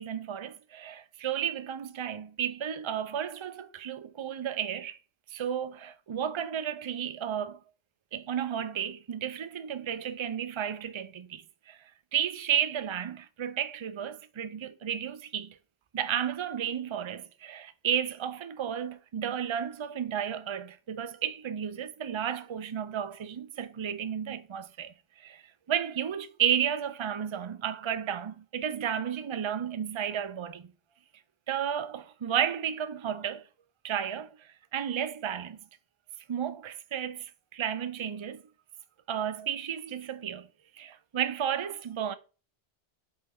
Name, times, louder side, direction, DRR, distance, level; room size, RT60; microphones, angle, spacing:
voice 1, 0.0-5.0 5.3-7.6 8.1-11.4 11.7-11.8 12.1-15.5 15.9-24.9 25.2-25.4 25.7-30.7 31.5-33.4 33.8-34.3 34.7-35.6 36.3-38.4 39.1-40.5 40.8-42.1, right 9 dB, 50° right, 0.3 m, -32 dB
5.6 x 3.9 x 4.2 m
omnidirectional pair, 1.2 m